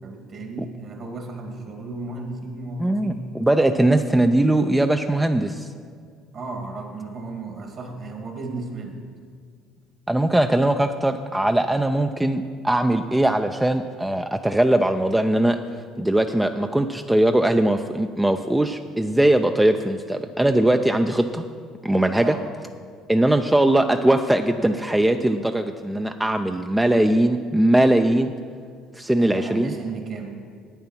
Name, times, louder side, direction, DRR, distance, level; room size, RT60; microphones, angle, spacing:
voice 1, 0.0-3.2 6.3-9.0 22.2-22.5 29.2-30.4, right 3 dB, 50° right, 3 dB, 2.1 m, -34 dB
voice 2, 2.8-5.7 10.1-15.6 16.0-21.4 21.8-22.3 23.1-28.3 28.9-29.7, right 1 dB, 10° right, 7 dB, 0.4 m, -20 dB
9.0 x 8.7 x 6.0 m, 2.1 s
supercardioid pair, 80°, 0 cm